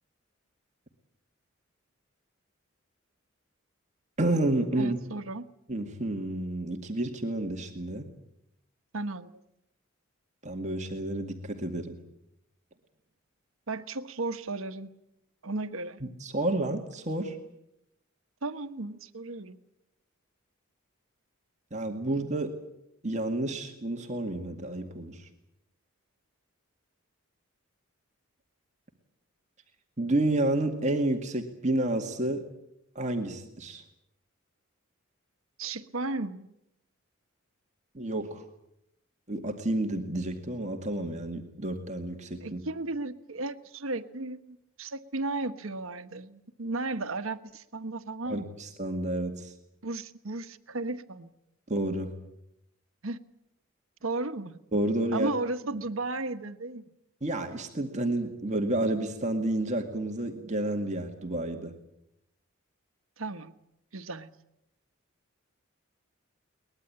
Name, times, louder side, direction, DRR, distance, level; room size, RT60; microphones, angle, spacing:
voice 1, 4.2-5.0 5.7-8.1 10.4-12.0 16.0-17.4 21.7-22.5 23.0-25.3 30.0-32.4 33.0-33.8 37.9-38.4 39.3-42.6 48.3-49.5 51.7-52.1 54.7-55.3 57.2-61.7, right 1 dB, 35° right, 3 dB, 2.1 m, -30 dB
voice 2, 4.8-5.4 8.9-9.3 13.7-14.9 15.4-16.0 18.4-19.6 35.6-36.5 42.4-48.6 49.8-51.3 53.0-53.2 54.0-54.6 55.1-56.8 63.2-63.5 63.9-64.3, right 2 dB, 80° right, 10 dB, 1.2 m, -34 dB
22.5 x 20.5 x 8.7 m, 0.82 s
head